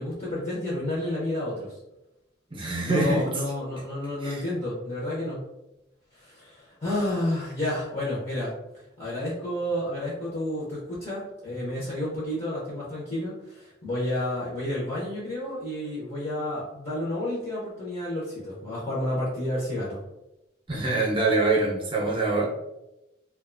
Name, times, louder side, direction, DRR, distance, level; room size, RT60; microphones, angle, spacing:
voice 1, 0.0-1.8 2.8-5.4 6.1-8.5 9.0-20.0, left 1 dB, 30° left, -7 dB, 0.7 m, -30 dB
voice 2, 2.5-3.2 4.2-4.4 20.7-22.5, right 3 dB, 25° right, -3 dB, 0.6 m, -24 dB
2.5 x 2.2 x 2.5 m, 0.93 s
head